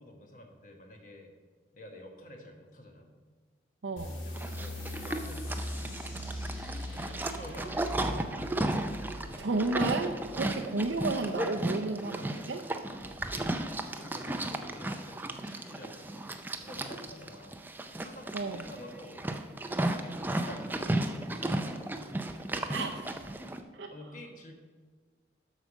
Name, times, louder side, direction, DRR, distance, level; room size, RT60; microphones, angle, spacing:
voice 1, 0.0-1.3 1.7-3.1 3.9-5.7 6.7-8.6 11.9-16.3 16.5-17.6 18.0-19.2 19.9-21.9 22.5-23.0 23.9-24.5, left 1 dB, 45° left, 3 dB, 1.3 m, -50 dB
voice 2, 3.8-4.2 9.4-12.6 18.3-18.6 22.7-23.0 23.7-23.9, right 3 dB, 75° right, 2 dB, 0.6 m, -32 dB
sound 1, 4.0-11.1, equal, 85° left, 2.2 m, -41 dB
Livestock farm animals working animals, 4.3-23.6, right 1 dB, 10° right, 0.4 m, -35 dB
7.9 x 6.3 x 6.3 m, 1.5 s
head